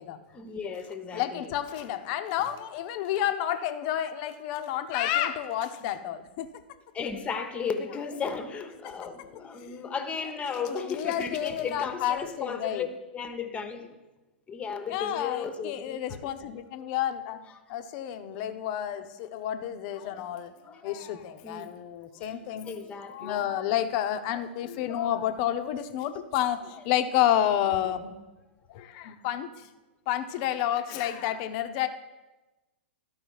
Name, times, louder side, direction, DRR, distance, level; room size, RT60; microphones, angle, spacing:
voice 1, 0.3-1.5 6.9-13.9 14.5-16.6 17.5-17.6 20.6-21.0 21.4-21.7 22.1-23.5 26.8-26.9, left 6 dB, 20° left, 7 dB, 1.0 m, -35 dB
voice 2, 1.1-6.5 9.2-9.6 10.6-12.9 14.9-17.4 17.7-20.5 20.8-28.1 28.7-29.5 30.1-31.9, left 11 dB, 45° left, 9 dB, 0.7 m, -30 dB
12.5 x 4.7 x 4.7 m, 1.1 s
figure-of-eight pair, 105°, 6 cm